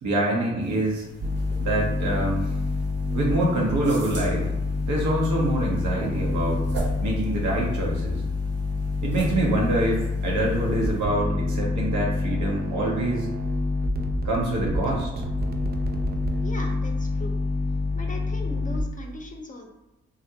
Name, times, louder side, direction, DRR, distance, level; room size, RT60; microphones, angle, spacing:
voice 1, 0.0-1.1 1.6-2.5 3.1-4.5 4.8-8.2 9.0-13.3 14.2-15.1, right 1 dB, 75° right, -2 dB, 0.9 m, -25 dB
sound 1, 0.6-11.1, right 1 dB, 55° right, 1.1 m, -40 dB
sound 2, 1.2-18.8, left 3 dB, 35° right, 0.4 m, -27 dB
voice 2, 16.4-17.3 17.9-19.7, left 1 dB, 25° left, 2 dB, 0.6 m, -39 dB
2.5 x 2.1 x 2.7 m, 0.99 s
supercardioid pair, 40°, 30 cm